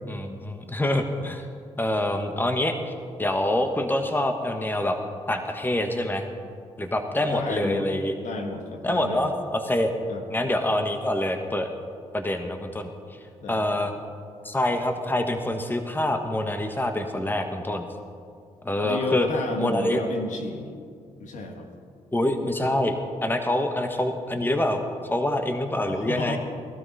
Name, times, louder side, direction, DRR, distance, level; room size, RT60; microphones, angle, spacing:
voice 1, 0.1-1.5 1.8-2.9 3.2-5.0 5.3-6.3 6.8-8.2 8.8-9.9 10.3-11.7 12.1-12.9 13.5-13.9 14.4-17.9 18.6-19.3 19.6-20.0 22.1-24.8 25.1-26.4, left 1 dB, 15° left, 5 dB, 1.4 m, -26 dB
voice 2, 7.2-7.9 8.2-9.3 10.1-10.2 13.4-13.6 18.8-20.8 21.2-21.7 25.8-26.4, left 3 dB, 70° left, 3 dB, 1.7 m, -31 dB
18.0 x 12.5 x 4.2 m, 2.2 s
supercardioid pair, 60°, 13 cm